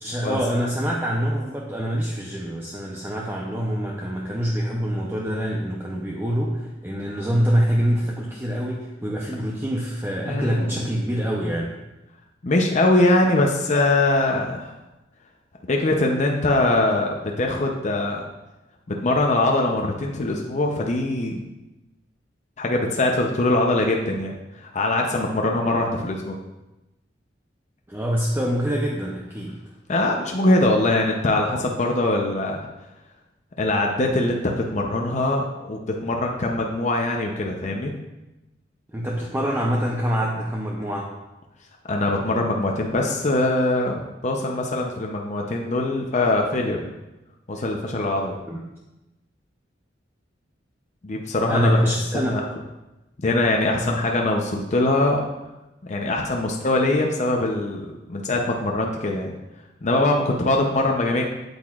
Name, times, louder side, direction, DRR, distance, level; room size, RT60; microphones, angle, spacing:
voice 1, 0.0-11.7 27.9-29.5 38.9-41.1 48.5-48.6 51.5-52.4 53.8-54.0, equal, 15° right, -2 dB, 0.6 m, -25 dB
voice 2, 10.2-10.8 12.4-14.8 15.7-18.3 18.9-21.4 22.6-26.4 29.9-32.7 33.6-37.9 41.9-46.9 47.5-48.4 51.0-52.4 53.2-55.3 55.8-59.3 59.8-61.2, left 2 dB, 40° left, 1 dB, 0.6 m, -22 dB
8.5 x 8.0 x 2.4 m, 1.0 s
head